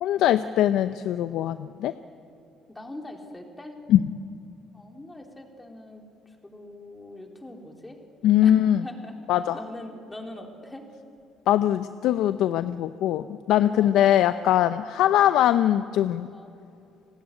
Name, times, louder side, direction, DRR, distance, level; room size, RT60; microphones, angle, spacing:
voice 1, 0.0-1.9 3.9-4.0 8.2-8.8 9.3-9.6 11.5-16.3, left 11 dB, 75° left, 12 dB, 0.7 m, -21 dB
voice 2, 2.7-3.8 4.7-8.0 8.4-9.2 9.5-10.9 13.8-14.0 16.3-16.5, left 1 dB, 10° left, 2 dB, 3.7 m, -42 dB
29.5 x 18.0 x 9.9 m, 2.6 s
cardioid pair, 115°, 0 cm